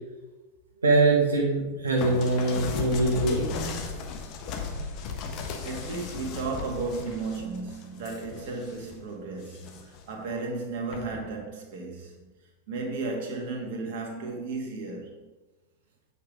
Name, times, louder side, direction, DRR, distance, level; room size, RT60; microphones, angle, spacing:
voice 1, 0.8-3.5, right 2 dB, 75° right, 1.4 m, -23 dB
sound 1, 2.0-9.0 9.4-10.1 10.9-11.2, left 4 dB, 40° left, 1.3 m, -36 dB
voice 2, 5.6-12.3 12.7-15.3, right 3 dB, 50° right, 1.8 m, -34 dB
8.5 x 5.6 x 5.0 m
figure-of-eight pair, 90°, 0 cm